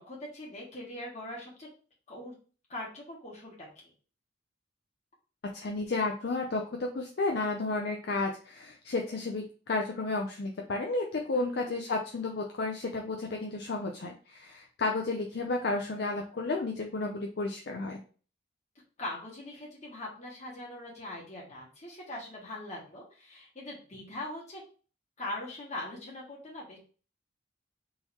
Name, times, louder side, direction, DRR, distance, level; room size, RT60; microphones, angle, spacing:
voice 1, 0.0-1.7 2.1-2.3 2.7-3.7 11.3-11.8 19.0-24.6 25.2-26.8, left 1 dB, 35° left, -4 dB, 1.7 m, -41 dB
voice 2, 5.5-18.0, left 3 dB, 55° left, 1 dB, 0.5 m, -32 dB
3.8 x 2.9 x 4.2 m, 0.39 s
head